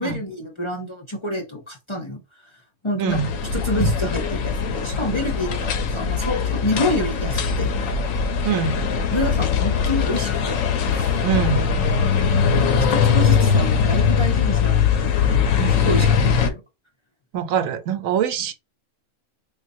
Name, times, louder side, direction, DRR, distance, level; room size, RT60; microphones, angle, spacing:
voice 1, 0.0-2.5 2.8-3.2 3.5-7.7 9.1-10.6 10.9-11.2 12.3-16.6, left 1 dB, 30° left, 0.6 m, -28 dB
voice 2, 3.0-3.3 3.8-3.9 8.4-8.7 11.2-11.9 17.3-18.5, right 7 dB, 80° right, 1.1 m, -23 dB
sound 1, 3.1-16.5, left 6 dB, 75° left, 1.1 m, -21 dB
3.9 x 2.4 x 2.6 m
omnidirectional pair, 1.4 m